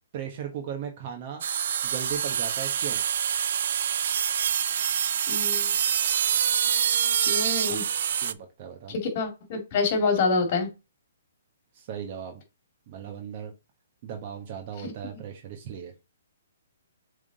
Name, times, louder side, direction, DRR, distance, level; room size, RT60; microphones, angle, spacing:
voice 1, 0.1-1.4 1.8-3.0 8.2-8.9 11.7-12.4 12.9-13.5 14.0-15.9, right 8 dB, 40° right, 3 dB, 1.3 m, -37 dB
sound 1, 1.4-8.3, right 8 dB, 60° right, 0.4 m, -26 dB
voice 2, 5.3-5.7 7.2-7.8 8.9-10.7, left 4 dB, 40° left, 5 dB, 2.4 m, -26 dB
7.2 x 3.7 x 4.1 m, 0.27 s
hypercardioid pair, 150°, 0 cm